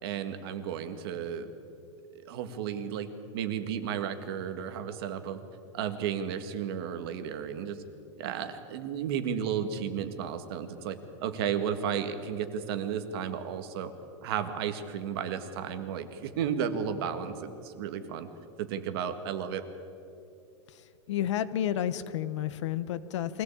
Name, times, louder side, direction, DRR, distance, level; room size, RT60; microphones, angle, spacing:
voice 1, 0.0-1.5 2.1-5.4 5.7-7.8 8.2-13.9 14.2-18.3 18.6-19.6, right 8 dB, 50° right, 9 dB, 1.8 m, -33 dB
voice 2, 21.1-23.4, left 10 dB, 70° left, 14 dB, 1.2 m, -31 dB
24.0 x 17.0 x 8.6 m, 2.7 s
supercardioid pair, 165°, 16 cm